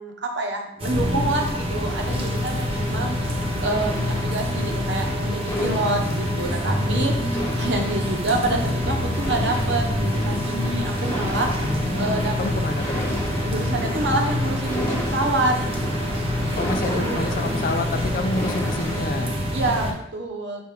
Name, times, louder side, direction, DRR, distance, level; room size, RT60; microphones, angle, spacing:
voice 1, 0.0-3.2 3.6-11.5 11.9-12.6 13.4-15.5 16.7-17.2 19.5-20.6, right 2 dB, 70° right, 2 dB, 1.1 m, -27 dB
sound 1, 0.8-19.9, left 1 dB, 30° right, 1.0 m, -26 dB
sound 2, 1.8-19.0, left 1 dB, 15° left, 1.0 m, -33 dB
voice 2, 6.9-7.3 11.6-13.2 16.6-19.3, left 2 dB, 50° left, 7 dB, 0.5 m, -29 dB
6.1 x 4.4 x 3.7 m, 0.77 s
head